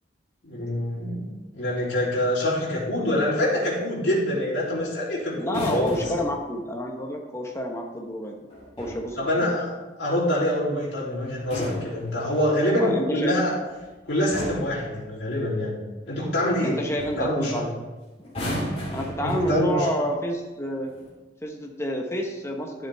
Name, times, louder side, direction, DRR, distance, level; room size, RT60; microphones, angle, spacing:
voice 1, 0.4-5.9 9.2-9.7 10.0-13.5 14.0-15.8 16.1-16.8 17.2-17.7 19.2-19.9, left 1 dB, 75° left, -7 dB, 3.1 m, -25 dB
sound 1, 5.4-6.4 8.5-9.1 11.3-12.6 13.7-13.9 14.3-14.8 16.5-16.7 17.0-17.3 18.2-19.9 20.8-21.1, equal, 35° left, 2.8 m, -34 dB
voice 2, 5.4-8.4 8.8-9.6 12.7-13.4 16.6-17.7 18.9-20.9 21.4-22.9, equal, 15° left, 1 dB, 1.0 m, -29 dB
11.5 x 7.4 x 3.5 m, 1.2 s
head